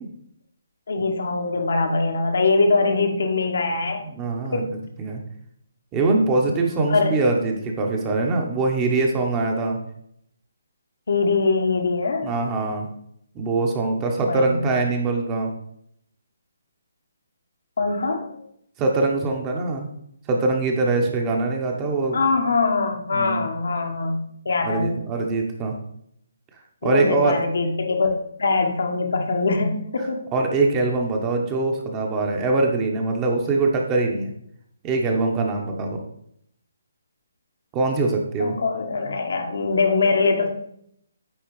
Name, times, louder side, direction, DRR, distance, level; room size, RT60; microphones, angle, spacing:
voice 1, 0.9-4.1 4.5-4.6 6.9-7.1 11.1-12.3 14.3-14.7 17.8-18.3 22.1-24.9 26.8-30.2 38.4-40.5, left 3 dB, 70° left, 3 dB, 1.3 m, -22 dB
voice 2, 4.1-5.2 5.9-9.8 12.2-12.9 13.3-15.5 18.8-19.9 20.3-22.2 23.1-23.5 24.6-25.7 26.8-27.3 30.3-34.3 34.8-36.0 37.7-38.6, right 3 dB, 20° right, 1 dB, 1.1 m, -23 dB
9.0 x 4.0 x 3.2 m, 0.70 s
figure-of-eight pair, 145°, 0 cm